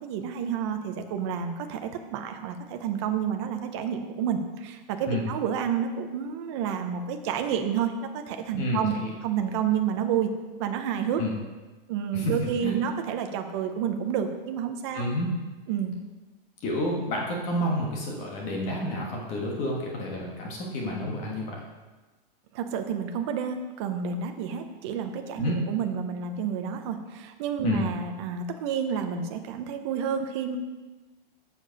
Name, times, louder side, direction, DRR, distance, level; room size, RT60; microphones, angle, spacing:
voice 1, 0.0-8.9 9.2-10.3 10.6-11.2 11.9-15.0 15.7-15.9 22.5-30.6, right 8 dB, 30° right, 6 dB, 0.6 m, -30 dB
voice 2, 8.6-9.1 11.2-11.3 12.1-12.3 12.6-12.7 14.9-15.3 16.6-21.6 25.4-25.6 27.6-27.8, left 1 dB, 25° left, -2 dB, 1.4 m, -29 dB
8.0 x 6.9 x 5.2 m, 1.2 s
supercardioid pair, 170°, 30 cm